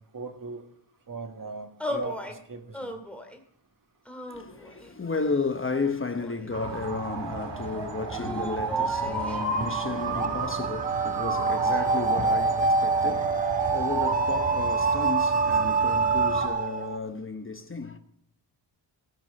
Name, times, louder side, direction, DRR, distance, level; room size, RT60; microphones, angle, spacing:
voice 1, 0.1-0.6 1.1-2.9, right 4 dB, 45° right, 2.0 m, -39 dB
sound 1, 1.8-2.4 2.7-3.4 4.0-5.0 5.7-6.7 8.1-9.4, left 1 dB, 5° left, 1.9 m, -37 dB
voice 2, 4.3-18.0, left 4 dB, 30° left, 1.0 m, -33 dB
sound 2, 6.5-16.5, right 4 dB, 65° right, 1.9 m, -32 dB
sound 3, 9.4-17.0, right 4 dB, 20° right, 0.4 m, -26 dB
18.5 x 6.2 x 6.8 m
wide cardioid pair, 135°, 45 cm